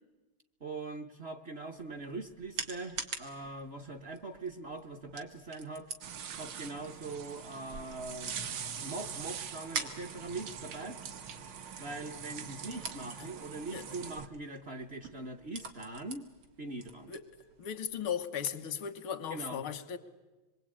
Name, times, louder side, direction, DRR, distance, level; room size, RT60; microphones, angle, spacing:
voice 1, 0.6-5.9 6.4-11.0 11.8-16.3 16.6-17.1 19.3-19.7, right 3 dB, 40° right, 5 dB, 1.0 m, -42 dB
sound 1, 1.7-18.1, right 5 dB, 85° right, 2.9 m, -47 dB
sound 2, 6.0-14.3, right 7 dB, 65° right, 1.7 m, -43 dB
voice 2, 17.6-20.0, left 8 dB, 85° left, 10 dB, 2.1 m, -36 dB
26.5 x 22.5 x 8.7 m, 1.2 s
omnidirectional pair, 2.2 m